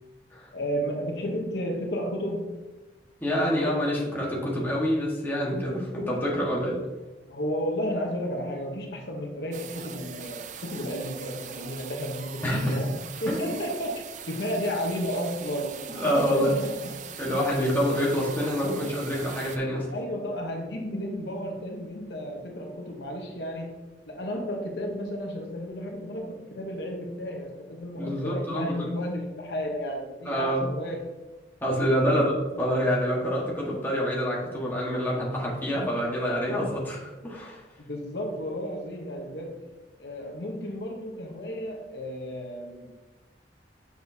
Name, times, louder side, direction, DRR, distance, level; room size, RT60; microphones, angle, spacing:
voice 1, 0.5-2.6 7.3-12.9 13.2-14.0 14.3-15.8 16.1-16.9 17.6-17.7 19.9-23.7 24.1-31.0 32.1-32.2 37.8-39.7 40.0-43.0, equal, 75° left, 2 dB, 1.0 m, -33 dB
voice 2, 3.2-6.8 12.4-12.8 13.3-13.4 15.9-16.6 17.2-19.9 27.9-28.9 30.2-30.7 31.6-32.3 32.6-37.7, equal, 10° left, -5 dB, 1.5 m, -27 dB
sound 1, 9.5-19.6, right 7 dB, 45° right, 0.4 m, -41 dB
6.9 x 6.1 x 2.8 m, 1.2 s
head